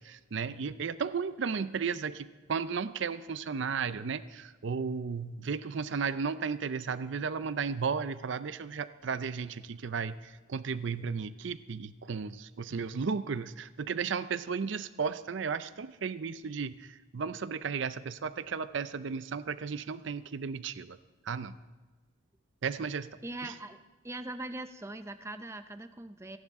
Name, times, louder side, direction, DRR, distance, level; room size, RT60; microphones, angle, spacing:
voice 1, 0.0-21.0 21.2-21.5 22.6-23.1 23.4-23.5, right 5 dB, 65° right, 14 dB, 0.5 m, -34 dB
voice 2, 23.2-23.8 24.0-26.4, right 2 dB, 15° right, 9 dB, 0.5 m, -41 dB
28.0 x 11.0 x 3.6 m, 1.2 s
head